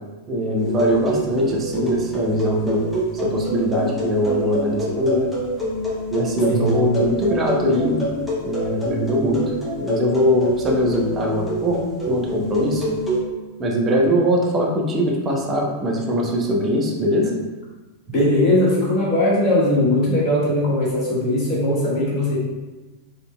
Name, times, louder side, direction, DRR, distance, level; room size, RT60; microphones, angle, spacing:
voice 1, 0.3-2.9 3.2-5.3 6.1-8.0 8.4-12.9 13.6-17.3, equal, 25° right, -2 dB, 0.8 m, -21 dB
sound 1, 0.6-13.2, equal, 5° left, 1.0 m, -26 dB
voice 2, 18.1-22.4, left 1 dB, 30° left, -7 dB, 1.5 m, -19 dB
4.2 x 3.3 x 2.2 m, 1.2 s
figure-of-eight pair, 90°, 0 cm